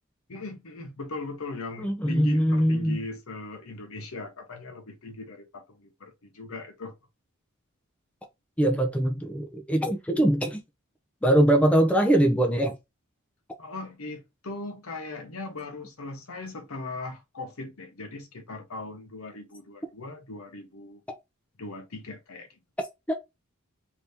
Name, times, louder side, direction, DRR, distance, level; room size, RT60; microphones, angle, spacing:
voice 1, 0.3-6.9 13.6-21.0 21.6-22.6, left 2 dB, 70° left, 0.9 m, -39 dB
voice 2, 1.8-3.0 8.6-10.6 11.2-12.7 23.1-23.2, right 1 dB, 5° left, 0.5 m, -22 dB
2.8 x 2.7 x 3.4 m
head